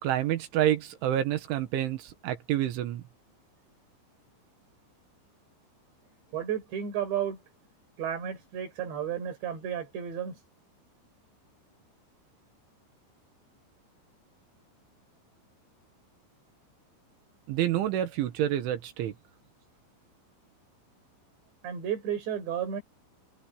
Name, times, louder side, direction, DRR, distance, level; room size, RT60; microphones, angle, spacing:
voice 1, 0.0-3.0 17.5-19.1, right 12 dB, 80° right, 4.1 m, -28 dB
voice 2, 6.3-7.4 8.0-10.4 21.6-22.8, right 9 dB, 65° right, 7.8 m, -32 dB
omnidirectional pair, 5.4 m